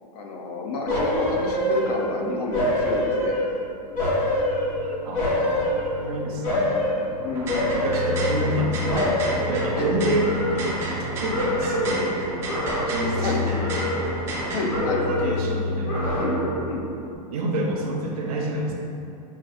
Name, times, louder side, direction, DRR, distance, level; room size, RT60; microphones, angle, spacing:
voice 1, 0.1-3.4 7.2-7.6 9.8-9.9 13.2-13.4 14.5-15.3 16.1-16.4 16.7-16.8, left 3 dB, 70° left, 0 dB, 0.6 m, -29 dB
sound 1, 0.9-2.1 2.5-3.6 4.0-6.1 6.4-7.0 7.5-8.6 8.9-11.0 11.3-12.0 12.4-13.3 13.6-14.4 14.7-15.4 15.8-16.7 17.0-17.1, left 1 dB, 50° left, 1.1 m, -26 dB
voice 2, 1.2-1.5 5.0-5.6 6.0-7.1 7.8-9.2 9.5-12.5 12.9-14.3 14.7-16.1 17.3-18.7, right 2 dB, 60° right, -1 dB, 0.6 m, -28 dB
sound 2, 3.8-16.4, left 4 dB, 90° left, 1.3 m, -33 dB
sound 3, 7.2-14.6, right 1 dB, 15° right, 0.3 m, -32 dB
5.8 x 2.4 x 2.5 m, 2.7 s
supercardioid pair, 160°, 21 cm